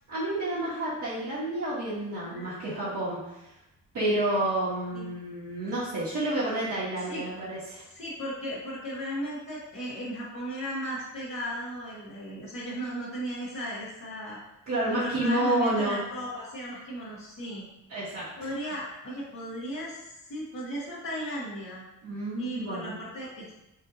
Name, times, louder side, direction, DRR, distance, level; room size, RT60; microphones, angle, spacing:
voice 1, 0.1-3.2 3.9-7.8 14.7-16.0 17.9-18.2 22.0-22.9, right 1 dB, 60° right, -11 dB, 1.4 m, -29 dB
voice 2, 7.9-14.4 14.9-17.6 18.4-21.8 22.4-23.6, equal, 45° left, -11 dB, 1.4 m, -36 dB
5.4 x 2.6 x 2.7 m, 0.90 s
cardioid pair, 130°, 33 cm